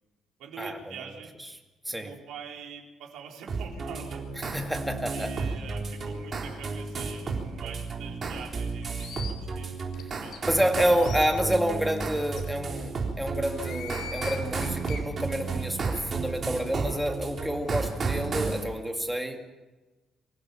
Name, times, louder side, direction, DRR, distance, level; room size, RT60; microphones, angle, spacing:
voice 1, 0.4-1.4 1.9-4.3 5.1-9.8 10.2-10.5 11.0-11.4 15.6-16.0, right 7 dB, 80° right, 0 dB, 4.2 m, -45 dB
sound 1, 3.5-18.6, right 4 dB, 30° right, 3.8 m, -33 dB
voice 2, 4.5-5.3 10.4-19.5, equal, 5° right, 3 dB, 2.3 m, -28 dB
sound 2, 8.8-9.3 9.9-10.0 10.3-10.4 10.9-11.3 12.0-12.1 12.4-12.5 13.5-15.0, left 7 dB, 60° left, 3.9 m, -40 dB
25.5 x 16.0 x 7.1 m, 1.2 s
cardioid pair, 155°, 0 cm